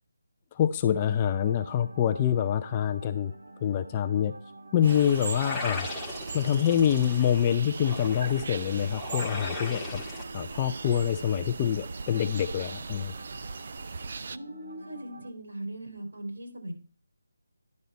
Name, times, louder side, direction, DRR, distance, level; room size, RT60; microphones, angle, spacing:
voice 1, 0.5-3.3 3.6-4.3 4.7-5.9 6.3-10.0 10.3-13.1, left 9 dB, 20° left, 7 dB, 0.5 m, -26 dB
sound 1, 0.9-15.3, right 2 dB, 80° right, 2.2 m, -48 dB
sound 2, 4.8-14.4, right 4 dB, 45° right, 0.4 m, -39 dB
sound 3, 4.9-10.2, left 2 dB, ahead, 1.1 m, -38 dB
voice 2, 14.3-16.7, right 1 dB, 60° right, 3 dB, 3.3 m, -39 dB
10.5 x 5.5 x 4.2 m, 0.38 s
figure-of-eight pair, 170°, 0 cm